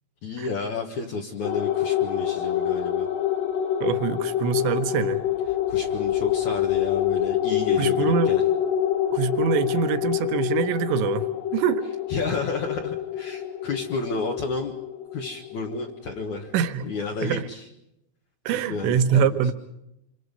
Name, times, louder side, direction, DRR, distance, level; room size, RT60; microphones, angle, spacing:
voice 1, 0.2-3.1 5.7-8.4 12.1-14.7 15.1-16.5 16.8-17.6 18.5-19.4, left 4 dB, 85° left, 1 dB, 1.6 m, -31 dB
sound 1, 1.5-16.2, left 10 dB, 65° left, 3.1 m, -26 dB
voice 2, 3.8-5.2 7.8-8.4 9.1-11.9 16.5-16.9 17.2-17.5 18.5-19.5, right 8 dB, 75° right, 10 dB, 3.0 m, -24 dB
27.0 x 25.5 x 5.4 m, 0.81 s
omnidirectional pair, 6.0 m